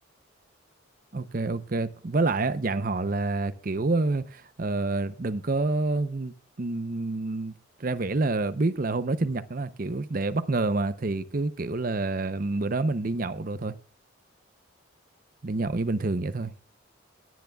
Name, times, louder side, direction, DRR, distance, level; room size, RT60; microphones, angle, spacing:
voice 1, 1.1-7.5 7.8-13.7 15.4-16.5, right 3 dB, 45° right, 0.6 m, -28 dB
18.0 x 9.3 x 2.3 m
head